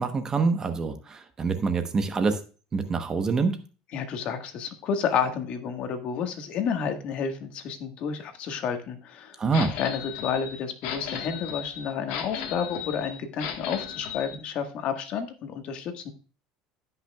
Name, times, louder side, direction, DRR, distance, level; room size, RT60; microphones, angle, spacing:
voice 1, 0.0-2.4 2.7-3.6 9.4-9.7, right 4 dB, 25° right, 8 dB, 1.0 m, -26 dB
voice 2, 3.9-9.4 9.8-16.1, left 7 dB, 50° left, 6 dB, 1.5 m, -30 dB
sound 1, 9.5-14.3, left 8 dB, 75° left, 1.5 m, -36 dB
16.0 x 5.7 x 2.3 m, 0.37 s
cardioid pair, 130°, 2 cm